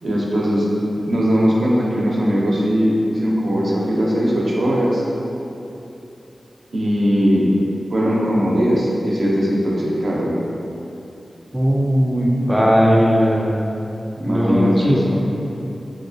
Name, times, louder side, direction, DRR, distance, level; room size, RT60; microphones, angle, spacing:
voice 1, 0.0-0.7 1.0-5.0 6.7-7.5 7.9-10.3 14.2-15.2, equal, 70° right, -5 dB, 0.5 m, -19 dB
voice 2, 11.5-13.6 14.3-15.0, equal, 5° right, -4 dB, 0.3 m, -17 dB
3.0 x 2.7 x 2.6 m, 2.9 s
wide cardioid pair, 115°, 0 cm